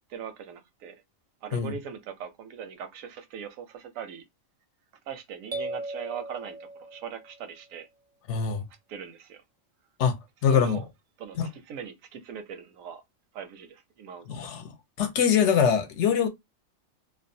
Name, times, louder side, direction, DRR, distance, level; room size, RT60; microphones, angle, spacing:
voice 1, 0.1-1.0 1.4-4.2 5.1-7.9 8.9-9.4 10.5-10.9 11.2-13.0 13.3-14.3, right 7 dB, 85° right, 1.0 m, -40 dB
sound 1, 5.5-7.4, right 2 dB, 50° right, 0.6 m, -37 dB
voice 2, 8.3-8.6 10.0-10.2 10.4-10.8 11.4-11.5 14.3-14.7 15.0-16.3, left 7 dB, 70° left, 0.8 m, -23 dB
2.6 x 2.1 x 2.6 m
omnidirectional pair, 1.4 m